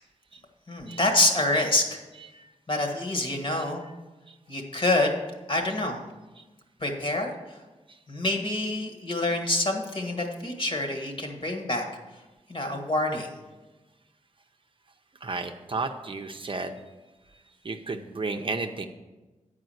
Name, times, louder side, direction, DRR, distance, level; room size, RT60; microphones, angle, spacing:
voice 1, 0.7-2.0 2.7-3.8 4.5-5.1 5.5-6.0 6.8-7.3 8.1-11.8 12.5-13.3, left 2 dB, 45° left, 3 dB, 1.5 m, -26 dB
voice 2, 15.2-16.8 17.6-18.9, right 3 dB, 45° right, 5 dB, 0.6 m, -32 dB
9.3 x 4.9 x 7.8 m, 1.2 s
wide cardioid pair, 105°, 13 cm